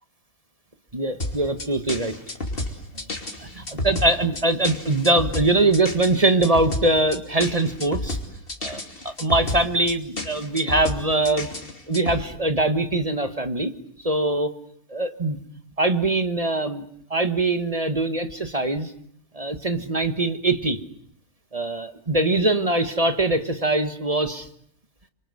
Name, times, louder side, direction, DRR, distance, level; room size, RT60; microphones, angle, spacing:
voice 1, 0.9-2.1 2.9-3.0 3.4-8.2 8.6-11.5 11.9-13.7 14.0-14.6 14.9-15.4 15.8-16.8 17.1-18.9 19.3-20.8 21.5-24.5, right 2 dB, 25° right, 9 dB, 1.6 m, -22 dB
sound 1, 1.2-12.2, left 1 dB, 40° left, 3.2 m, -31 dB
28.0 x 25.5 x 7.9 m, 0.66 s
omnidirectional pair, 1.5 m